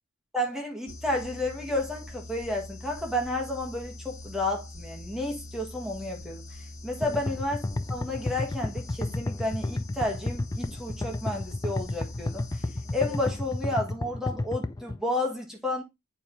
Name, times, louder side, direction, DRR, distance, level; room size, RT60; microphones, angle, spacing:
voice 1, 0.3-6.4 6.8-12.6 12.9-15.8, left 1 dB, ahead, 1.4 m, -31 dB
sound 1, 0.9-14.0, left 2 dB, 90° left, 1.9 m, -43 dB
sound 2, 7.0-15.0, left 2 dB, 15° left, 0.3 m, -31 dB
8.4 x 4.6 x 2.6 m
head